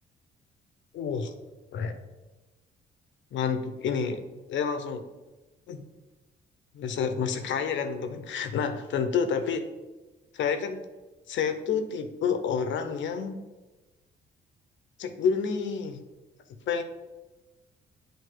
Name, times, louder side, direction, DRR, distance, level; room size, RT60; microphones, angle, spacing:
voice 1, 0.9-1.3 1.7-2.0 3.3-4.2 4.5-5.1 5.7-5.8 6.7-9.7 10.3-10.8 11.3-13.4 15.0-16.0 16.5-16.8, left 6 dB, 70° left, 8 dB, 0.7 m, -29 dB
7.9 x 2.6 x 4.5 m, 1.2 s
cardioid pair, 90°, 20 cm